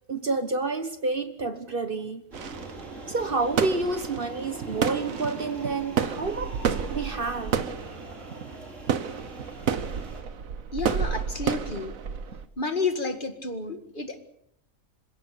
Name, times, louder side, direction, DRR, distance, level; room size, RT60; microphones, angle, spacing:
voice 1, 0.1-2.2 3.1-6.6 6.9-7.6, right 3 dB, 45° right, 1.3 m, -29 dB
sound 1, 2.3-10.2, right 2 dB, 65° right, 4.4 m, -41 dB
sound 2, 2.3-12.5, right 7 dB, 90° right, 1.5 m, -31 dB
voice 2, 10.7-12.0 12.6-14.2, left 4 dB, 40° left, 2.0 m, -30 dB
27.0 x 16.5 x 6.8 m
omnidirectional pair, 1.4 m